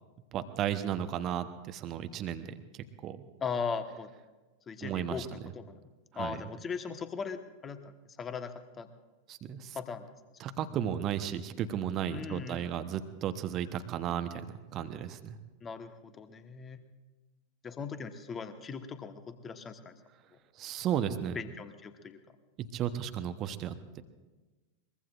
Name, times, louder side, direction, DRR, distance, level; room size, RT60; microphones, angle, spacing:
voice 1, 0.3-2.5 2.7-3.2 4.8-5.3 6.1-6.4 9.3-9.8 10.4-14.5 14.7-15.4 20.6-21.4 22.7-24.0, right 9 dB, 35° right, 10 dB, 1.0 m, -34 dB
voice 2, 3.4-4.1 4.7-5.9 6.1-8.9 9.7-10.1 12.1-12.7 15.6-16.8 17.6-20.0 20.3-20.4 21.3-22.2, left 5 dB, 20° left, 9 dB, 1.3 m, -39 dB
23.0 x 22.0 x 2.5 m, 1.2 s
figure-of-eight pair, 90°, 0 cm